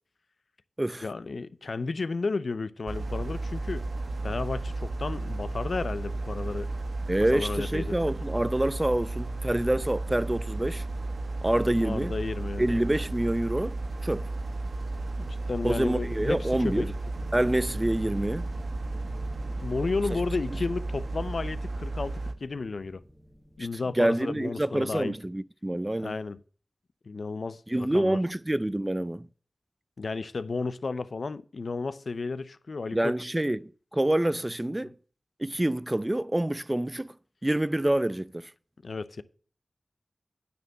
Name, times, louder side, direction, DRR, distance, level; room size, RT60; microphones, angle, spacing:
voice 1, 1.0-3.9 4.2-6.7 7.3-8.0 11.8-12.6 15.2-16.9 19.6-23.0 23.6-25.1 26.0-26.4 27.1-28.2 30.0-33.1 34.8-34.9 38.8-39.2, left 4 dB, 80° left, 0.5 m, -33 dB
sound 1, 2.9-22.3, right 2 dB, 75° right, 1.0 m, -33 dB
voice 2, 7.1-10.9 11.4-12.1 12.6-14.3 15.6-16.9 17.3-18.5 24.0-26.2 27.7-29.3 32.9-34.9 35.4-37.1 37.4-38.5, right 1 dB, 25° right, 0.4 m, -27 dB
sound 2, 17.1-24.9, equal, 5° right, 1.2 m, -49 dB
9.4 x 4.4 x 7.4 m
cardioid pair, 45°, 0 cm